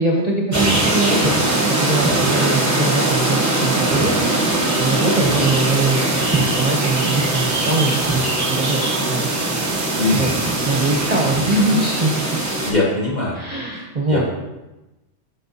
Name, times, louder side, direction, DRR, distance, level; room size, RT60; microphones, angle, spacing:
voice 1, 0.0-4.1 4.8-6.1 6.3-8.8 9.1-9.4 10.1-10.3 10.6-12.2 13.3-14.2, right 2 dB, 35° right, -1 dB, 0.9 m, -22 dB
sound 1, 0.5-12.7, right 2 dB, 15° right, 1.0 m, -21 dB
sound 2, 3.6-11.3, right 7 dB, 75° right, 0.8 m, -32 dB
voice 2, 10.0-10.3 12.6-13.4 13.7-13.8 14.1-14.3, left 2 dB, 40° left, -6 dB, 2.0 m, -21 dB
8.5 x 5.6 x 2.8 m, 1.0 s
omnidirectional pair, 1.2 m